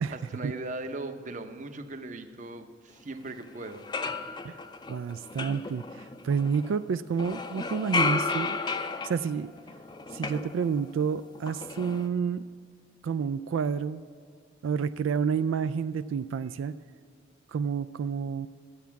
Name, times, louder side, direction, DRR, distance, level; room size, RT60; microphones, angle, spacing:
voice 1, 0.1-4.2, right 2 dB, 40° right, 8 dB, 0.7 m, -39 dB
sound 1, 3.3-3.4 3.7-6.8 7.1-11.1 11.3-12.1, left 4 dB, 20° left, 0.4 m, -33 dB
voice 2, 4.9-8.6 9.0-9.5 10.1-12.4 13.0-14.0 14.6-16.7 17.5-18.5, right 6 dB, 90° right, 12 dB, 0.3 m, -29 dB
12.5 x 8.2 x 5.8 m, 2.2 s
head